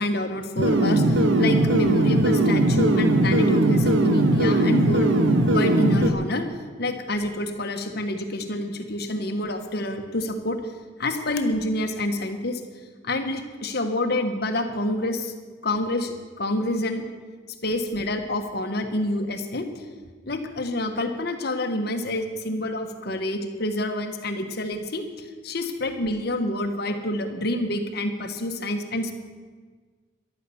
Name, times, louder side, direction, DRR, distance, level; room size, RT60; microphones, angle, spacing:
voice 1, 0.0-5.1 5.5-6.4 6.8-10.6 11.0-12.6 13.0-15.3 15.6-17.0 17.6-19.8 20.2-29.1, left 1 dB, 55° left, 5 dB, 1.5 m, -27 dB
sound 1, 0.6-6.1, right 1 dB, 75° right, 1.2 m, -19 dB
13.5 x 12.0 x 7.1 m, 1.4 s
head